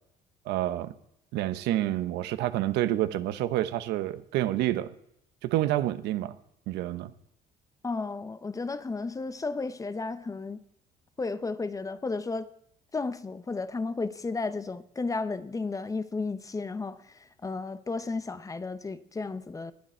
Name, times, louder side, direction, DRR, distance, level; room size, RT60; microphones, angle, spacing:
voice 1, 0.5-0.9 1.3-4.9 5.4-6.4 6.7-7.1, right 14 dB, 90° right, 0.9 m, -28 dB
voice 2, 7.8-10.6 11.2-12.5 12.9-19.7, left 3 dB, 20° left, 0.8 m, -33 dB
20.0 x 9.2 x 4.4 m
cardioid pair, 110°, 17 cm